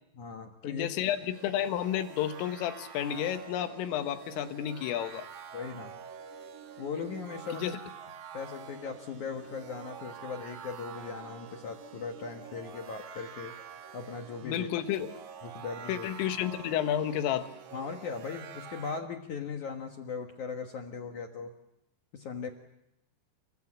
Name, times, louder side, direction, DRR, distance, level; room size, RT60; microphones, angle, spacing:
voice 1, 0.1-0.9 5.5-6.0 6.8-7.8 8.3-13.6 13.9-14.7 15.4-16.1 17.7-21.5 22.1-22.5, left 5 dB, 70° left, 4 dB, 1.8 m, -38 dB
voice 2, 0.7-5.3 7.5-7.7 14.4-15.1 15.9-17.5, left 10 dB, 85° left, 8 dB, 4.0 m, -31 dB
sound 1, 1.0-19.0, right 8 dB, 60° right, 2.1 m, -47 dB
29.0 x 24.5 x 7.4 m, 0.83 s
omnidirectional pair, 5.7 m